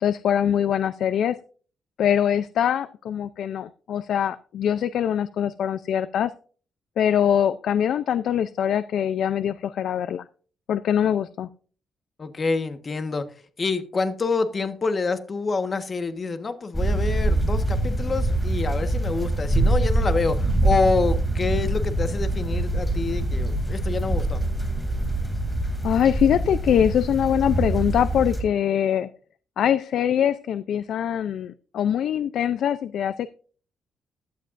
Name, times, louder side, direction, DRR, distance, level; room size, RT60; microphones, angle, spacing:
voice 1, 0.0-1.4 2.0-6.3 7.0-10.2 10.7-11.5 25.8-29.1 29.6-33.3, left 9 dB, 70° left, 0.5 m, -23 dB
voice 2, 12.2-13.3 13.6-24.4, left 4 dB, 35° left, 1.4 m, -27 dB
sound 1, 16.7-28.4, right 1 dB, 5° left, 2.9 m, -24 dB
16.0 x 11.5 x 2.6 m
cardioid pair, 115°, 0 cm